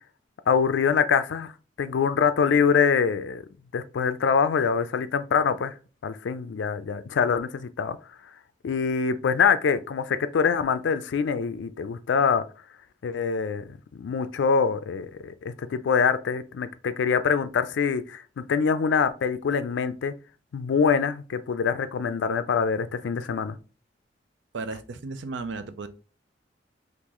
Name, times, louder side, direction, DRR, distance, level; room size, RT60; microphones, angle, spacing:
voice 1, 0.5-1.5 1.8-3.4 3.7-5.7 6.0-8.0 8.6-12.4 13.0-13.6 13.9-20.1 20.5-23.6, left 6 dB, 80° left, 0.4 m, -24 dB
voice 2, 24.5-25.9, right 3 dB, 80° right, 0.5 m, -34 dB
3.0 x 2.5 x 3.7 m
head